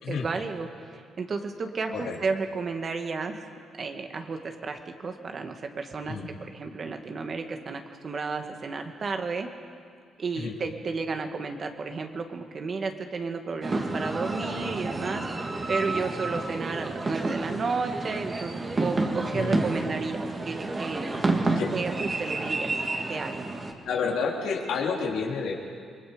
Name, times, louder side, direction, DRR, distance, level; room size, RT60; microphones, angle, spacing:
voice 1, 0.1-3.4 3.8-9.5 10.2-21.2 21.7-22.8 23.1-23.3, right 4 dB, 45° right, 5 dB, 2.1 m, -32 dB
sound 1, 13.6-23.7, right 2 dB, 30° right, 2.4 m, -30 dB
voice 2, 19.3-19.7 21.6-21.7 23.8-25.5, left 5 dB, 80° left, -1 dB, 3.6 m, -29 dB
28.5 x 22.0 x 5.3 m, 2.2 s
cardioid pair, 90°, 0 cm